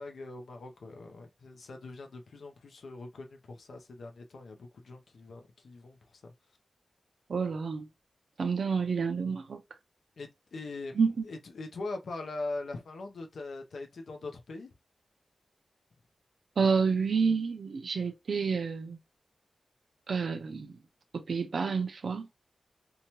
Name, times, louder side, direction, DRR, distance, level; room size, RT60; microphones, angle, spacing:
voice 1, 0.0-6.3 10.2-14.7, left 3 dB, 80° left, 0.5 m, -42 dB
voice 2, 7.3-7.9 8.4-9.6 11.0-11.2 16.6-19.0 20.1-20.8 21.1-22.3, right 5 dB, 65° right, 0.4 m, -29 dB
2.8 x 2.1 x 2.9 m
wide cardioid pair, 140°, 0 cm